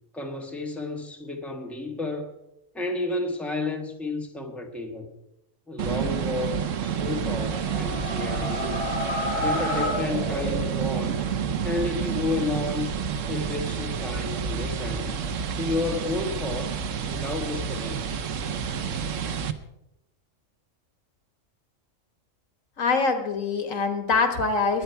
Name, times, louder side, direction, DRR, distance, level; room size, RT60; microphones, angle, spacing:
voice 1, 0.1-2.3 2.7-5.1 5.7-8.9 9.4-11.2 11.6-13.0 13.3-15.1 15.6-18.3, left 3 dB, ahead, 1.5 m, -31 dB
sound 1, 5.8-19.5, right 7 dB, 75° right, 1.2 m, -29 dB
sound 2, 7.3-11.0, left 1 dB, 50° left, 5.0 m, -30 dB
voice 2, 22.8-24.8, left 4 dB, 80° left, 2.0 m, -24 dB
21.0 x 9.1 x 4.6 m
omnidirectional pair, 1.3 m